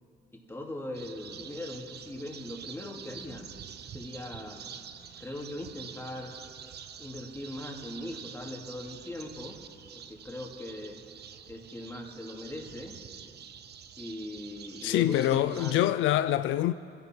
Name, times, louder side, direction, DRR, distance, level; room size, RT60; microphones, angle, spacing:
voice 1, 0.3-3.5 3.9-4.8 5.2-6.3 7.0-9.6 9.9-11.0 11.5-13.0 14.0-15.9, left 1 dB, 10° left, 2.5 m, -40 dB
sound 1, 0.9-15.8, right 8 dB, 55° right, 0.8 m, -47 dB
voice 2, 14.8-16.7, left 13 dB, 85° left, 0.4 m, -25 dB
26.0 x 11.0 x 4.5 m
cardioid pair, 90°, 20 cm